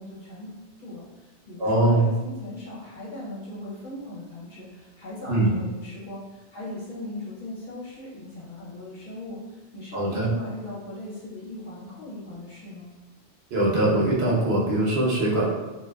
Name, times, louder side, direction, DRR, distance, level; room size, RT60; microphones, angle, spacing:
voice 1, 0.0-12.9, left 1 dB, 50° left, -7 dB, 0.8 m, -39 dB
voice 2, 1.6-2.1 5.3-5.5 9.9-10.3 13.5-15.5, right 1 dB, 70° right, -4 dB, 0.8 m, -22 dB
2.5 x 2.2 x 2.2 m, 1.1 s
omnidirectional pair, 1.1 m